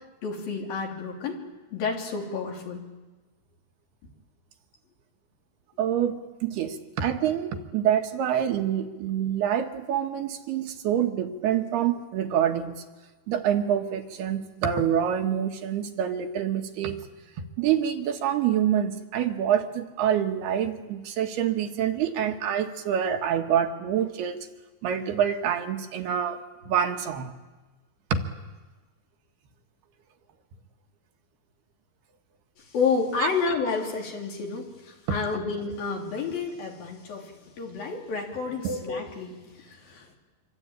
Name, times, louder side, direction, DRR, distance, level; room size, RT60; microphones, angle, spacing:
voice 1, 0.2-1.4 1.7-2.8 32.7-40.2, left 5 dB, 60° left, 0 dB, 4.7 m, -30 dB
voice 2, 5.8-12.8 13.3-17.0 17.6-24.5 24.8-27.3 28.1-28.2 33.2-33.3 35.1-35.2 38.6-38.8, right 9 dB, 70° right, 4 dB, 3.2 m, -26 dB
26.5 x 23.0 x 8.8 m, 1.2 s
omnidirectional pair, 4.9 m